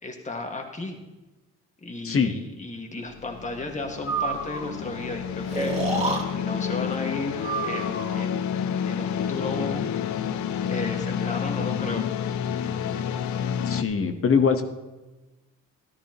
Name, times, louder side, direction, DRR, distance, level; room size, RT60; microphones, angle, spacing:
voice 1, 0.0-1.0 1.8-8.5 8.8-9.9 10.7-12.1, left 2 dB, 25° left, 3 dB, 1.8 m, -34 dB
sound 1, 3.1-13.8, left 8 dB, 70° left, 0.6 m, -29 dB
Breathing, 4.0-4.7 5.5-6.2 7.4-8.2, right 3 dB, 20° right, 2.1 m, -28 dB
voice 2, 13.7-14.6, left 6 dB, 45° left, 7 dB, 1.1 m, -22 dB
13.5 x 12.0 x 3.0 m, 1.1 s
cardioid pair, 90°, 30 cm